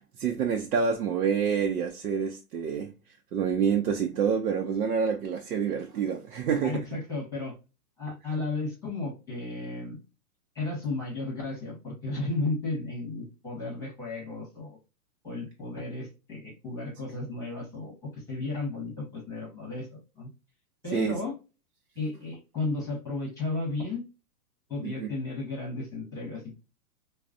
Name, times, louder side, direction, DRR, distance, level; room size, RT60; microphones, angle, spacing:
voice 1, 0.2-2.9 3.3-6.9 20.9-21.2 24.8-25.1, right 6 dB, 90° right, 0.8 m, -27 dB
voice 2, 6.6-7.5 8.0-10.0 10.5-14.8 15.2-20.3 20.8-21.3 22.0-24.0 24.7-26.6, left 3 dB, 5° left, 1.0 m, -34 dB
4.7 x 2.2 x 2.4 m
hypercardioid pair, 165°, 46 cm